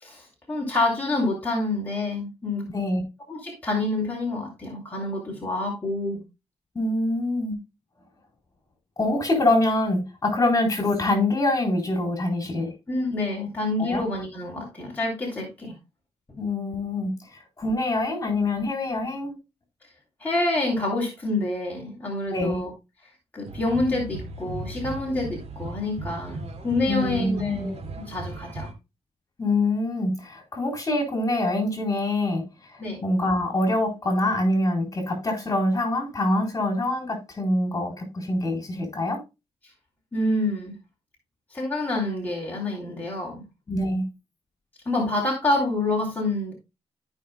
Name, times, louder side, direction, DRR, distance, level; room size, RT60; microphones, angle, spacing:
voice 1, 0.0-2.6 3.3-6.2 12.9-15.7 20.2-22.7 23.3-28.7 32.8-33.0 40.1-40.7 41.5-43.4 44.8-46.5, left 2 dB, 15° left, 3.3 m, -27 dB
voice 2, 6.7-7.6 9.0-12.7 13.8-14.0 16.4-17.1 17.6-19.4 22.3-22.6 26.9-27.7 29.4-32.4 32.7-39.2 43.7-44.0, left 2 dB, 30° left, 4.0 m, -25 dB
sound 1, 23.5-28.7, right 2 dB, 75° right, 2.3 m, -37 dB
14.5 x 5.7 x 2.2 m
cardioid pair, 80°, 11 cm